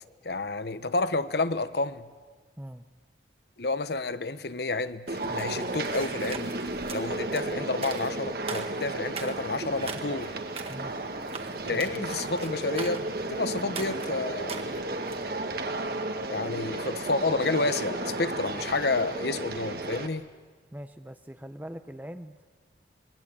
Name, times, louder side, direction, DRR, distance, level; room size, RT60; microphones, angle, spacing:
voice 1, 0.2-2.1 3.6-6.5 6.9-10.3 11.6-14.7 16.3-20.3, left 3 dB, 60° left, 1.0 m, -30 dB
sound 1, 5.1-15.3, right 4 dB, 35° right, 1.8 m, -42 dB
sound 2, 5.1-20.1, right 2 dB, 55° right, 1.8 m, -33 dB
voice 2, 10.7-11.1 11.7-12.0 20.7-22.3, equal, 10° right, 0.7 m, -42 dB
27.0 x 22.0 x 8.7 m
head